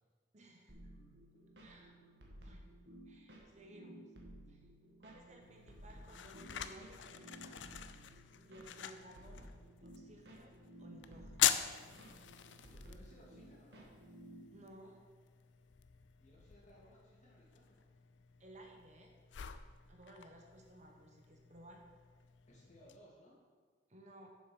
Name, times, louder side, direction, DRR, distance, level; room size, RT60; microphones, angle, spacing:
voice 1, 0.3-0.8 1.6-1.9 2.4-2.6 3.1-4.0 4.5-4.7 5.0-7.8 8.5-9.5 9.8-11.5 14.5-15.0 18.4-19.1 19.9-21.8 23.9-24.3, right 1 dB, 40° right, 2 dB, 1.1 m, -58 dB
sound 1, 0.7-14.6, right 1 dB, 65° right, 1.7 m, -56 dB
sound 2, 5.4-23.0, left 11 dB, 80° left, 0.5 m, -43 dB
voice 2, 12.6-13.9 16.2-17.9 22.5-23.3, equal, 40° left, -5 dB, 2.7 m, -62 dB
7.3 x 7.1 x 6.2 m, 1.5 s
head